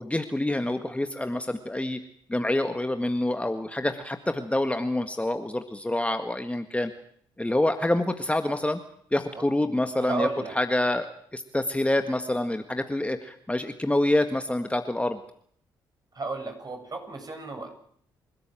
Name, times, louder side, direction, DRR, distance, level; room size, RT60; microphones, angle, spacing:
voice 1, 0.0-2.0 2.3-6.9 7.4-8.8 9.1-10.3 10.5-15.2, left 1 dB, 10° left, 8 dB, 1.8 m, -27 dB
voice 2, 10.0-10.5 16.2-17.7, right 3 dB, 40° right, 4 dB, 7.5 m, -33 dB
29.5 x 13.0 x 9.1 m, 0.64 s
hypercardioid pair, 45°, 10 cm